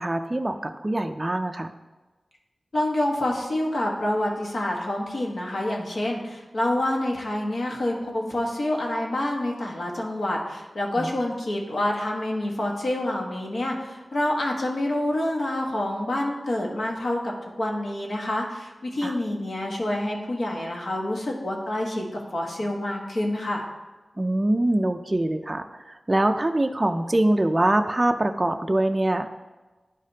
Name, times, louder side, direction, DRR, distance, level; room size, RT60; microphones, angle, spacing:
voice 1, 0.0-1.7 11.0-11.1 19.0-19.2 24.2-29.4, right 1 dB, 25° right, 6 dB, 0.4 m, -24 dB
voice 2, 2.7-23.6, left 1 dB, 70° left, -1 dB, 1.3 m, -27 dB
10.5 x 5.0 x 2.8 m, 1.2 s
wide cardioid pair, 80°, 0 cm